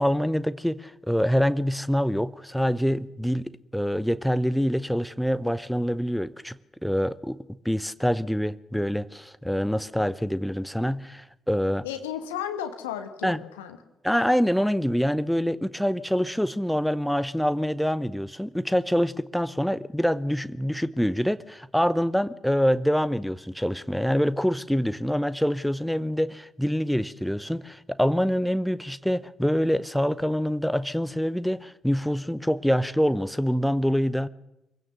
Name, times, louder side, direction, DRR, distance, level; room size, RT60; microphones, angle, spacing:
voice 1, 0.0-11.9 13.2-13.4 14.0-34.3, equal, ahead, 16 dB, 0.8 m, -25 dB
voice 2, 11.8-13.8, left 9 dB, 75° left, 8 dB, 1.1 m, -34 dB
24.5 x 16.0 x 6.8 m, 0.90 s
figure-of-eight pair, 40°, 0 cm